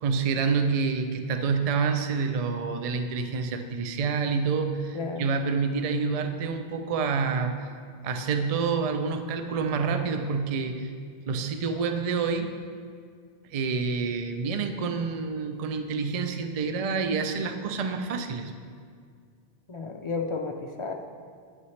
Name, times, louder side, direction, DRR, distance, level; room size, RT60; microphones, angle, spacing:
voice 1, 0.0-7.7 8.0-10.9 11.3-12.5 13.4-18.5, right 5 dB, 45° right, 6 dB, 0.5 m, -28 dB
voice 2, 4.9-5.3 19.7-20.9, left 4 dB, 50° left, 3 dB, 0.4 m, -32 dB
9.3 x 8.5 x 3.2 m, 2.1 s
omnidirectional pair, 1.1 m